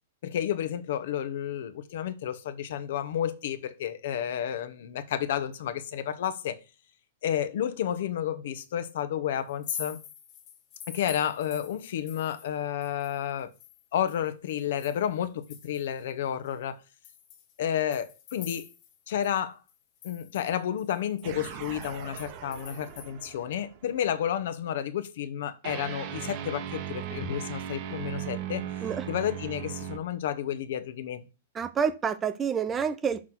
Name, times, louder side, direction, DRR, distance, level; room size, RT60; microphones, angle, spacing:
voice 1, 0.2-6.6 7.2-10.0 10.9-13.5 13.9-16.8 17.6-18.7 19.1-19.6 20.0-28.6 29.1-31.2, left 10 dB, 60° left, 0.9 m, -31 dB
sound 1, 9.5-12.6 12.8-16.0 16.5-16.6 17.0-19.0 19.2-19.3 19.7-23.1, left 8 dB, 30° left, 1.4 m, -45 dB
sound 2, 21.2-24.0 25.6-30.0, right 10 dB, 35° right, 0.9 m, -38 dB
voice 2, 31.5-33.2, right 7 dB, 15° right, 0.4 m, -28 dB
6.1 x 3.9 x 6.0 m
hypercardioid pair, 165°, 0 cm